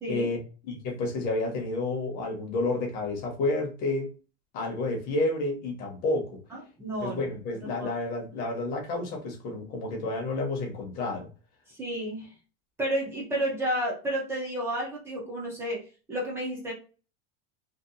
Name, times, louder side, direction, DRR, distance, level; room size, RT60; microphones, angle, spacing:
voice 1, 0.1-0.4 0.7-4.1 4.5-6.4 7.0-11.3, left 2 dB, 30° left, 0.6 m, -30 dB
voice 2, 6.8-7.2 7.8-7.9 11.7-12.3 12.8-16.7, right 1 dB, 10° right, 0.3 m, -31 dB
2.7 x 2.2 x 2.4 m
supercardioid pair, 175°, 31 cm